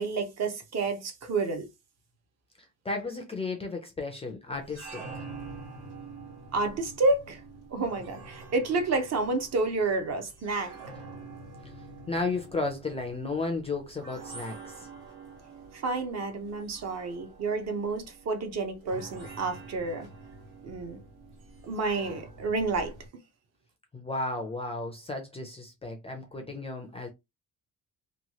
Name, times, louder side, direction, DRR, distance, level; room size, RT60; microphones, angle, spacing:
voice 1, 0.0-1.7 6.5-7.4 7.7-10.7 15.7-20.1 20.6-21.0 21.6-22.9, right 3 dB, 45° right, 0.6 m, -29 dB
voice 2, 2.8-5.2 11.2-14.9 23.9-27.1, left 3 dB, 15° left, 0.4 m, -34 dB
sound 1, 4.5-23.1, right 3 dB, 80° right, 1.5 m, -47 dB
3.0 x 2.2 x 2.8 m
cardioid pair, 175°, 38 cm